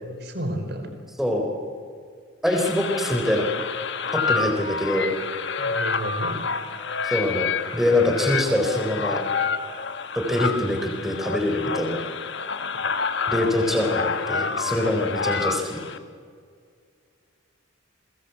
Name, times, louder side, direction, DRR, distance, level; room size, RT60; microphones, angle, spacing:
voice 1, 0.0-0.9 5.6-6.4, right 1 dB, 55° right, 7 dB, 4.6 m, -31 dB
voice 2, 1.2-1.5 2.4-3.5 4.1-5.1 7.0-9.2 10.3-12.0 13.3-15.8, left 1 dB, ahead, 2 dB, 4.1 m, -24 dB
sound 1, 2.5-16.0, left 5 dB, 55° left, 1.5 m, -28 dB
29.5 x 23.5 x 8.3 m, 2.1 s
head